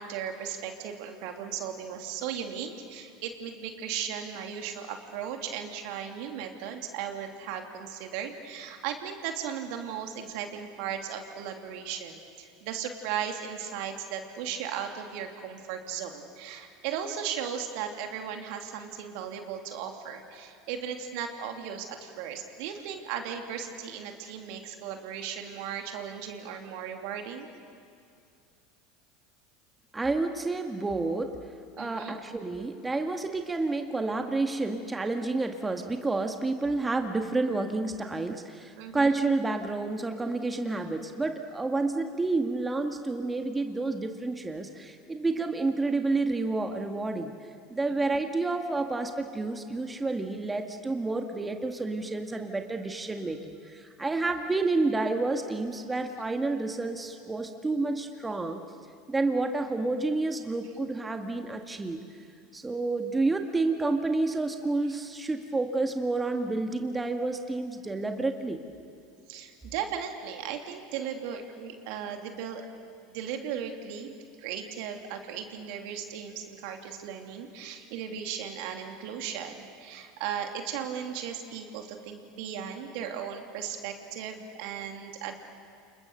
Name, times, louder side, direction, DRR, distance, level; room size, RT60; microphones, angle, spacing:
voice 1, 0.0-27.5 31.8-32.2 38.8-39.2 47.9-48.1 69.3-72.7 73.1-85.3, right 8 dB, 60° right, 4 dB, 2.9 m, -36 dB
voice 2, 29.9-31.4 31.8-47.3 47.7-58.6 59.1-62.0 62.5-68.6, right 3 dB, 15° right, 5 dB, 1.9 m, -29 dB
30.0 x 28.0 x 6.8 m, 2.5 s
hypercardioid pair, 80°, 0 cm